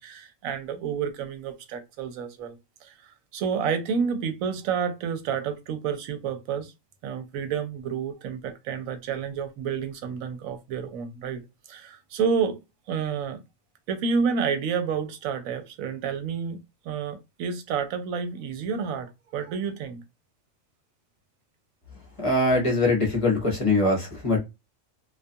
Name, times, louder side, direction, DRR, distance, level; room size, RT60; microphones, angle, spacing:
voice 1, 0.0-6.7 7.0-11.4 11.7-12.6 12.9-13.4 13.9-16.6 16.8-20.0, right 6 dB, 85° right, 1.0 m, -29 dB
voice 2, 22.2-24.4, left 2 dB, 30° left, 0.8 m, -22 dB
2.4 x 2.3 x 2.6 m
omnidirectional pair, 1.4 m